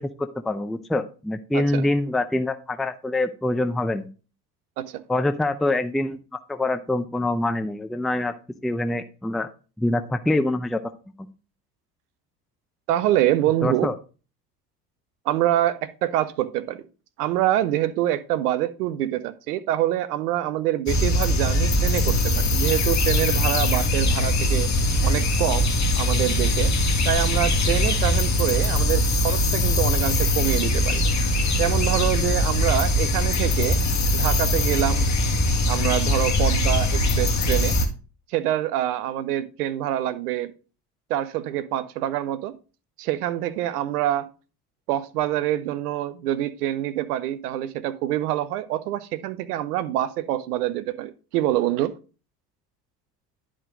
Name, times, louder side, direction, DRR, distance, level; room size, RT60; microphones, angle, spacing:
voice 1, 0.0-4.1 5.1-6.2 6.5-8.3 8.6-9.5 9.8-10.8 13.6-13.9, left 2 dB, ahead, 0.5 m, -25 dB
voice 2, 1.5-1.8 4.8-5.0 12.9-13.9 15.2-16.8 17.2-24.7 25.0-25.7 26.0-26.7 27.0-31.0 31.6-33.8 34.1-35.1 35.7-37.8 38.3-40.5 41.1-42.6 43.0-44.3 44.9-51.9, right 13 dB, 70° right, 0.9 m, -25 dB
sound 1, 20.9-37.9, left 1 dB, 35° left, 1.9 m, -21 dB
11.0 x 4.9 x 3.7 m
figure-of-eight pair, 65°, 48 cm